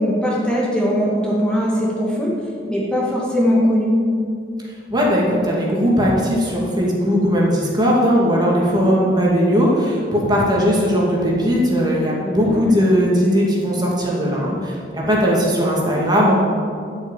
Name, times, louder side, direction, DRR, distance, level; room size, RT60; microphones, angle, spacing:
voice 1, 0.0-2.3 2.7-4.0 12.2-12.8, equal, 5° left, -5 dB, 2.1 m, -20 dB
voice 2, 4.9-16.3, equal, 25° right, -4 dB, 2.4 m, -18 dB
13.0 x 6.4 x 9.0 m, 2.3 s
head